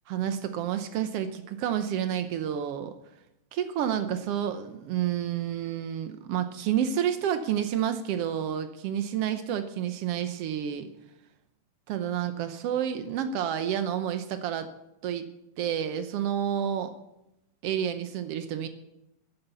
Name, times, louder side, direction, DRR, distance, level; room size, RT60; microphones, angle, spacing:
voice 1, 0.1-2.9 3.5-10.9 11.9-14.7 15.0-15.3 15.6-16.9 17.6-18.7, right 9 dB, 90° right, 8 dB, 1.3 m, -29 dB
14.0 x 11.0 x 6.9 m, 0.86 s
omnidirectional pair, 3.9 m